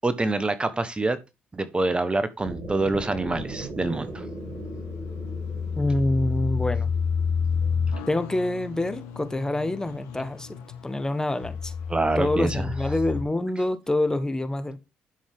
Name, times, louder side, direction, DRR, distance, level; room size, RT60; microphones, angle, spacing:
voice 1, 0.0-1.2 1.5-4.2 11.9-12.9, right 2 dB, 20° right, 1.3 m, -26 dB
sound 1, 2.4-8.5, right 2 dB, 55° right, 4.7 m, -39 dB
sound 2, 3.8-13.2, left 6 dB, 80° left, 1.5 m, -30 dB
voice 2, 5.8-6.9 8.1-10.6 10.8-11.7 12.2-14.8, left 1 dB, 15° left, 1.4 m, -26 dB
11.5 x 6.2 x 3.7 m
hypercardioid pair, 60°, 5 cm